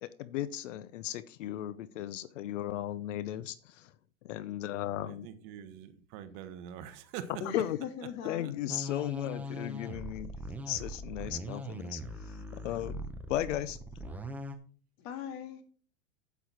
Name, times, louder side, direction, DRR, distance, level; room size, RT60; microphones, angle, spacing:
voice 1, 0.0-3.9 4.2-5.3 7.5-7.8 8.2-10.3 10.7-13.8, left 12 dB, 65° left, 0.7 m, -36 dB
voice 2, 5.1-7.3 8.4-8.5, right 9 dB, 45° right, 1.2 m, -44 dB
voice 3, 7.4-8.6 9.5-9.6 15.0-15.6, left 8 dB, 40° left, 2.0 m, -41 dB
sound 1, 8.7-14.6, equal, 5° right, 0.7 m, -41 dB
8.3 x 8.3 x 4.4 m
hypercardioid pair, 135°, 40 cm